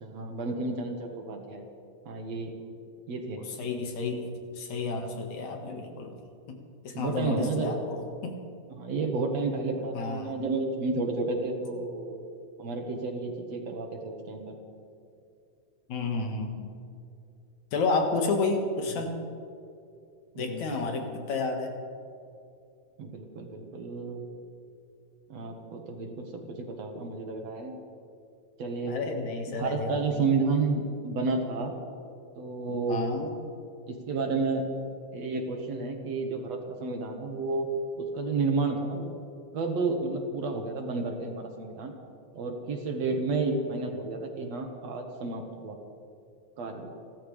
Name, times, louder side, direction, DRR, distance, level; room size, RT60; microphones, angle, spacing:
voice 1, 0.0-1.6 2.1-2.5 3.1-3.4 6.9-7.8 8.8-12.2 12.6-14.6 18.9-19.0 20.4-21.1 23.0-24.2 25.3-26.4 26.8-27.8 28.6-28.9 29.5-31.7 32.4-33.1 33.9-34.6 35.1-37.7 38.0-39.1 39.5-41.9 42.4-45.8 46.6-46.9, right 3 dB, 60° right, 3 dB, 2.4 m, -31 dB
voice 2, 3.4-4.3 4.5-6.2 6.5-6.6 6.8-8.3 9.9-10.3 15.9-16.7 17.7-19.2 20.4-21.7 28.8-30.3 32.7-33.3, left 3 dB, 65° left, 2 dB, 3.0 m, -31 dB
29.5 x 14.0 x 3.4 m, 2.5 s
omnidirectional pair, 3.6 m